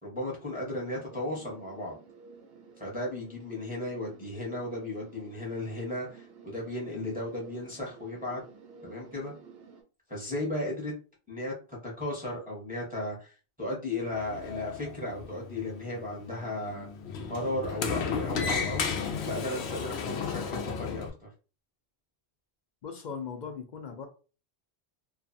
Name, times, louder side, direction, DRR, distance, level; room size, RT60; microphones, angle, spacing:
voice 1, 0.0-1.9 2.8-8.4 8.8-9.3 10.1-10.9 11.3-16.9 17.3-18.9 19.2-21.3, left 1 dB, 10° right, 0.9 m, -35 dB
sound 1, 0.8-9.8, right 5 dB, 75° right, 0.9 m, -52 dB
Sliding door, 14.1-21.1, left 6 dB, 80° left, 0.8 m, -34 dB
voice 2, 22.8-24.1, left 6 dB, 55° left, 0.5 m, -39 dB
2.6 x 2.4 x 2.6 m
omnidirectional pair, 1.1 m